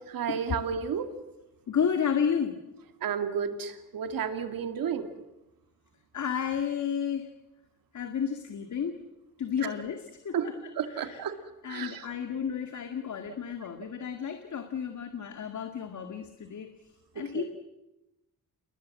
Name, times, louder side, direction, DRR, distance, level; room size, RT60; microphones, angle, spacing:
voice 1, 0.1-1.1 3.0-5.1 9.6-9.7 10.3-10.5 10.8-11.3 11.7-12.1 17.3-17.4, right 7 dB, 90° right, 8 dB, 2.4 m, -32 dB
voice 2, 1.7-2.6 6.1-7.3 7.9-9.0 9.4-10.6 10.9-11.2 11.6-16.7 17.2-17.4, left 7 dB, 60° left, 6 dB, 2.1 m, -32 dB
29.0 x 20.5 x 7.5 m, 0.98 s
cardioid pair, 110°, 34 cm